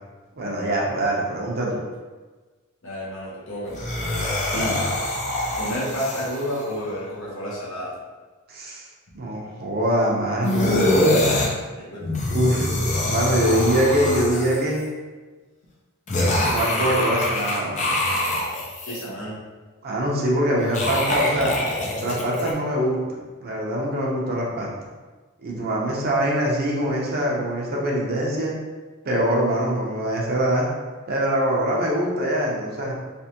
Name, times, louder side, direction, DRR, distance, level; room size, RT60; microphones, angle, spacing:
voice 1, 0.4-1.8 4.5-4.7 8.5-8.8 9.1-11.0 12.3-12.8 13.0-14.9 16.4-17.9 19.8-21.6 22.0-23.0 23.4-24.7 25.4-28.5 29.0-30.7 31.1-32.9, right 1 dB, 45° right, -3 dB, 0.8 m, -23 dB
voice 2, 2.8-3.9 4.5-4.8 5.6-8.0 11.7-12.2 18.9-19.4, equal, 65° left, -6 dB, 1.2 m, -31 dB
sound 1, 3.7-6.7 10.4-11.5 12.0-14.8 16.1-19.0 20.6-22.5, left 1 dB, 35° left, 0.6 m, -24 dB
3.4 x 3.2 x 2.9 m, 1.3 s
head